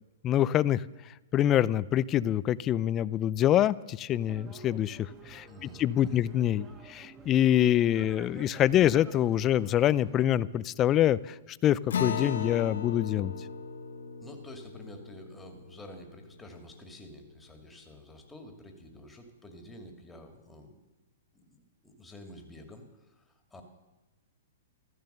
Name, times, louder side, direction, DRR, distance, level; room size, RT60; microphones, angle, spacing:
voice 1, 0.2-0.8 1.3-11.3 11.6-13.3, left 11 dB, 25° left, 19 dB, 0.4 m, -25 dB
sound 1, 4.1-10.3, right 4 dB, 20° right, 1.6 m, -50 dB
voice 2, 5.5-6.2 14.2-20.8 21.3-23.6, left 1 dB, 10° left, 4 dB, 2.3 m, -49 dB
Acoustic guitar, 11.9-16.8, left 6 dB, 80° left, 1.6 m, -37 dB
14.5 x 14.0 x 6.7 m, 1.1 s
hypercardioid pair, 140°, 0 cm